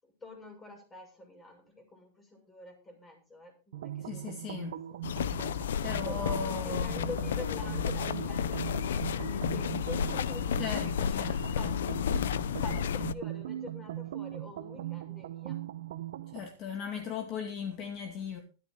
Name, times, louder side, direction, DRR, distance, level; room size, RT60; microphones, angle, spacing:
voice 1, 0.0-5.0 6.0-11.8 12.6-15.6, left 2 dB, 15° left, 6.5 m, -46 dB
sound 1, 3.7-16.5, right 13 dB, 80° right, 1.1 m, -40 dB
voice 2, 4.1-4.8 5.8-7.0 10.6-11.7 16.3-18.4, left 6 dB, 40° left, 2.4 m, -37 dB
sound 2, 5.0-13.1, left 8 dB, 85° left, 0.7 m, -32 dB
13.0 x 12.0 x 3.9 m
supercardioid pair, 135°, 0 cm